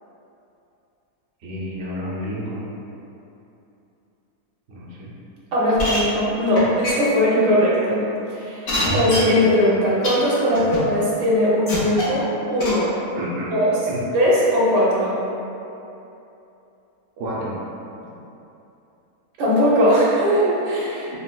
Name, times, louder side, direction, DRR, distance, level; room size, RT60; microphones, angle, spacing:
voice 1, 1.4-2.7 4.7-5.1 10.6-10.7 13.1-13.5 13.9-14.0 17.2-17.6 21.1-21.2, equal, 65° right, -6 dB, 0.6 m, -30 dB
voice 2, 5.5-8.7 8.9-13.0 13.5-13.8 14.1-15.2 19.4-21.1, equal, 90° right, -7 dB, 1.3 m, -19 dB
sound 1, 5.8-6.0 6.5-6.6 6.8-6.9 7.7-7.8 8.7-9.2 10.0-10.1 10.5-10.8 11.7-12.1 12.6-12.7, left 1 dB, 60° left, 0.6 m, -24 dB
3.9 x 2.0 x 2.2 m, 2.8 s
omnidirectional pair, 1.7 m